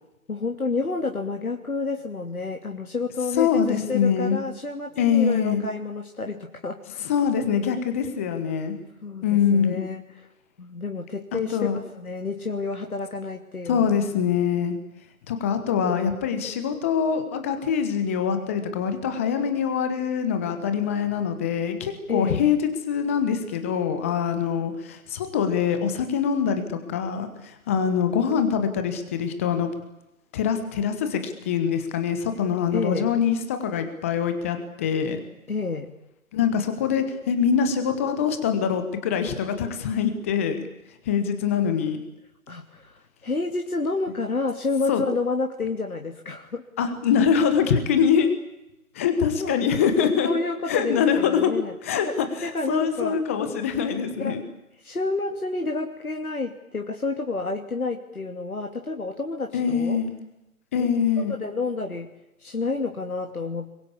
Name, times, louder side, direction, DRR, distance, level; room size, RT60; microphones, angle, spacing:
voice 1, 0.3-7.2 9.0-10.3 10.6-13.9 22.1-22.4 32.7-33.1 35.5-35.9 42.5-46.6 49.4-49.6 50.2-51.7 52.0-53.2 54.2-54.4 54.8-60.0 60.8-60.9 61.2-62.1 62.4-63.7, left 3 dB, 75° left, 2 dB, 2.8 m, -30 dB
voice 2, 3.4-4.4 5.0-5.6 7.1-8.7 9.2-9.8 11.3-11.8 13.7-14.8 15.3-22.6 22.9-29.7 30.3-35.2 36.3-40.6 41.1-42.0 44.9-45.0 46.8-48.3 48.9-50.3 50.7-51.5 51.8-54.4 59.5-60.1 60.7-61.4, left 7 dB, 10° left, 8 dB, 1.1 m, -24 dB
25.0 x 22.5 x 8.5 m, 0.92 s
figure-of-eight pair, 155°, 43 cm